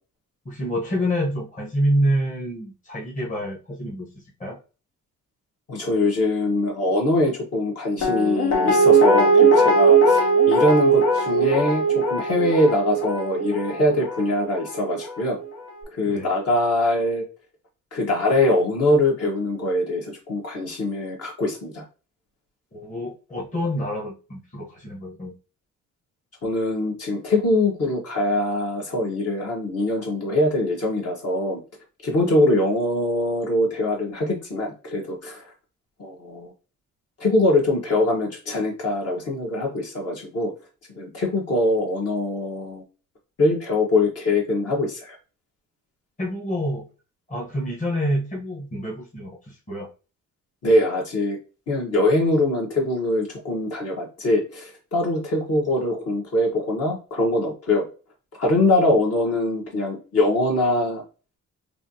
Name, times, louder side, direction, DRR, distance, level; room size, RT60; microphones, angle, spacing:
voice 1, 0.4-4.1 4.4-4.6 16.1-16.3 22.7-25.3 46.2-46.9 47.3-49.9, equal, 25° left, -1 dB, 1.1 m, -27 dB
voice 2, 5.7-15.4 15.9-17.2 17.9-21.8 26.4-31.6 32.0-35.4 36.0-36.5 37.2-40.5 40.9-42.8 43.4-45.2 50.6-51.4 51.7-57.8 58.4-61.0, left 1 dB, 55° left, -1 dB, 1.5 m, -23 dB
Guitar, 8.0-15.0 15.4-15.5, right 3 dB, 70° left, 1.1 m, -19 dB
3.3 x 2.7 x 2.8 m, 0.33 s
cardioid pair, 90°, 30 cm